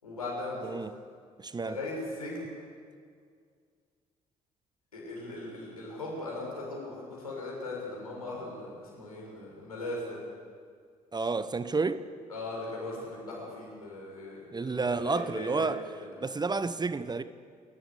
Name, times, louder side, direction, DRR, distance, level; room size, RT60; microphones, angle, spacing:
voice 1, 0.0-0.8 1.6-2.5 4.9-10.2 12.3-15.7 16.0-16.1, left 2 dB, 80° left, 6.4 m, -39 dB
voice 2, 1.4-1.8 11.1-12.1 14.5-15.8 16.2-17.2, right 4 dB, 20° right, 1.0 m, -30 dB
28.5 x 14.0 x 8.4 m
figure-of-eight pair, 45°, 19 cm